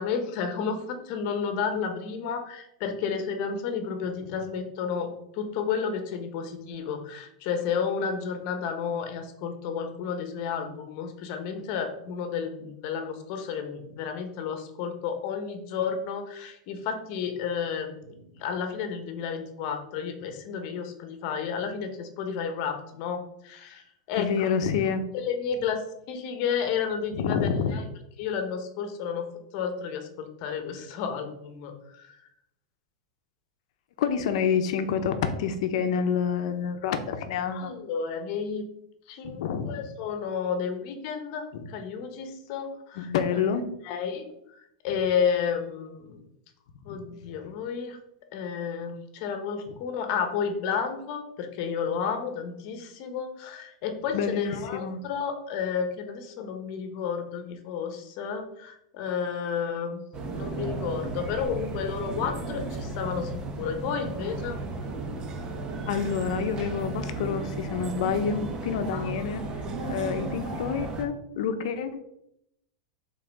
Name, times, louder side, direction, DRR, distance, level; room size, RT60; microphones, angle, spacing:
voice 1, 0.0-24.5 25.1-27.9 28.2-32.1 37.5-38.7 39.1-43.1 43.8-44.3 44.8-46.2 46.8-48.0 48.3-60.0 60.3-64.6 68.9-69.4, left 6 dB, 45° left, 7 dB, 1.1 m, -32 dB
voice 2, 24.2-25.1 27.1-27.7 34.0-37.7 39.2-39.8 41.5-41.7 43.0-43.7 46.9-47.0 54.1-55.0 65.9-69.4 69.9-72.0, left 7 dB, 60° left, 9 dB, 0.9 m, -28 dB
sound 1, 60.1-71.0, right 3 dB, 25° right, 1.0 m, -34 dB
5.7 x 4.1 x 5.3 m, 0.78 s
supercardioid pair, 155°, 4 cm